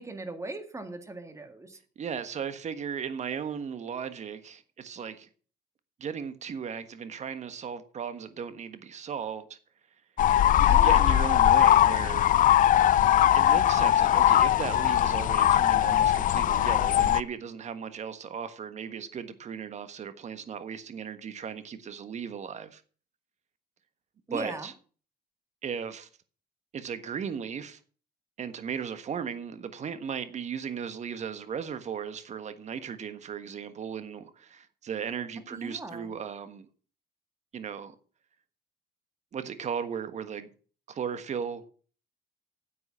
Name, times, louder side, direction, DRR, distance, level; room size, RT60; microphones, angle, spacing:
voice 1, 0.0-1.8 10.7-11.1 24.3-24.7 35.5-36.1, right 2 dB, 15° right, 2.0 m, -38 dB
voice 2, 2.0-5.3 6.0-9.6 10.6-12.6 13.3-22.8 24.3-24.7 25.6-26.1 26.7-27.8 28.4-36.7 37.5-37.9 39.3-40.5 40.9-41.6, right 7 dB, 45° right, 1.5 m, -36 dB
sound 1, 10.2-17.2, left 11 dB, 50° left, 0.5 m, -21 dB
10.0 x 7.8 x 7.3 m
cardioid pair, 110°, 17 cm